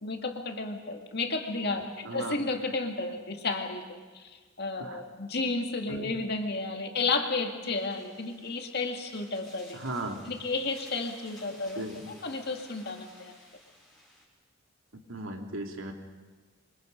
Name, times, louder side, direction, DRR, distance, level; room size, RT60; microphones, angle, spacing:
voice 1, 0.0-9.8 10.3-13.3, left 3 dB, 50° left, 4 dB, 2.2 m, -32 dB
voice 2, 2.0-2.4 4.8-5.0 5.9-6.2 9.7-10.2 11.8-12.0 15.1-15.9, right 2 dB, 80° right, 3 dB, 2.6 m, -37 dB
sound 1, 7.7-14.2, left 1 dB, ahead, 6.6 m, -55 dB
27.0 x 24.0 x 5.3 m, 1.4 s
head